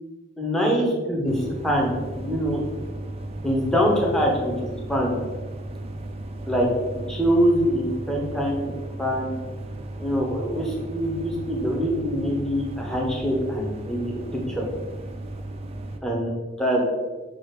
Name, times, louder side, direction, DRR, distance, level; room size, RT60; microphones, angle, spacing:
voice 1, 0.4-2.6 3.4-4.5 4.9-5.2 6.5-6.7 7.1-9.3 10.0-14.7 16.0-16.3 16.6-16.8, equal, 5° left, -2 dB, 0.7 m, -24 dB
sound 1, 1.3-16.0, right 1 dB, 30° right, 0.3 m, -35 dB
6.2 x 2.4 x 3.1 m, 1.3 s
head